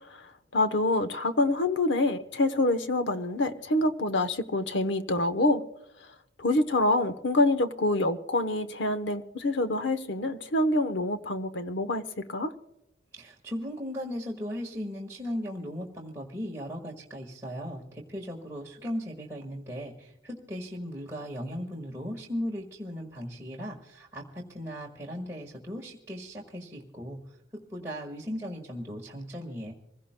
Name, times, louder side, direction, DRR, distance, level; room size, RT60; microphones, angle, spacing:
voice 1, 0.5-5.6 6.4-12.5, left 2 dB, 70° left, 0.9 m, -26 dB
voice 2, 13.1-27.2 27.7-29.7, equal, 15° right, 1.6 m, -37 dB
26.0 x 16.5 x 2.2 m
head